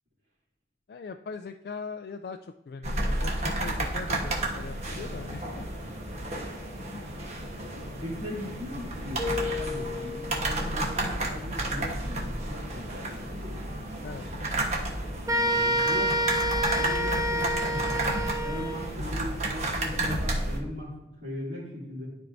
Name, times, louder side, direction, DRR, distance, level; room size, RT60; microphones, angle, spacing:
voice 1, 0.9-2.4 2.7-5.7 6.9-7.0 7.8-8.0 14.0-14.3, left 4 dB, 60° left, 6 dB, 0.3 m, -40 dB
sound 1, 2.8-20.6, right 1 dB, 40° right, 1.2 m, -32 dB
voice 2, 8.0-13.6 15.3-16.3 16.7-17.9 18.4-22.2, left 1 dB, 65° right, -11 dB, 2.7 m, -39 dB
Keyboard (musical), 9.2-11.2, left 6 dB, 15° left, 1.8 m, -35 dB
sound 2, 15.3-18.9, right 1 dB, 20° right, 0.6 m, -27 dB
12.5 x 4.5 x 2.6 m, 0.94 s
head